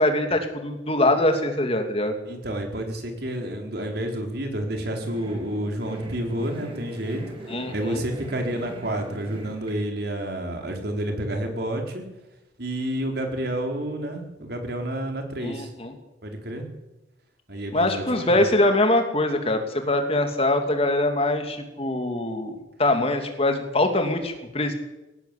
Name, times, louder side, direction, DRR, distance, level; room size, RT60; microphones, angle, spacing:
voice 1, 0.0-2.1 7.5-8.0 15.4-15.9 17.7-24.7, left 1 dB, 30° left, 5 dB, 2.9 m, -23 dB
voice 2, 2.2-7.2 7.7-12.0 12.6-15.7 16.2-16.6 17.5-18.4, right 1 dB, 60° right, 3 dB, 4.5 m, -29 dB
sound 1, 4.6-9.7, right 1 dB, 30° right, 5.9 m, -42 dB
18.5 x 17.5 x 8.6 m, 0.99 s
head